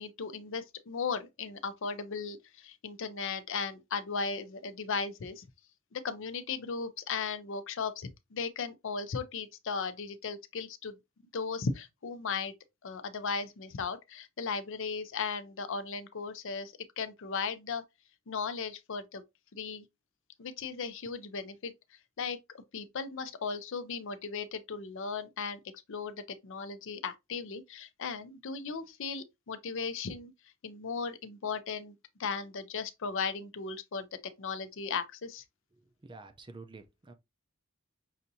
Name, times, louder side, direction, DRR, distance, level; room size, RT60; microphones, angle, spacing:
voice 1, 0.0-5.4 5.9-11.0 11.3-12.5 12.8-17.8 18.3-19.2 19.5-19.9 20.4-21.7 22.2-25.6 25.9-30.3 30.6-31.9 32.2-35.4, left 5 dB, 60° left, 0.5 m, -36 dB
voice 2, 35.8-37.1, right 3 dB, 20° right, 0.5 m, -49 dB
5.7 x 2.6 x 2.6 m
head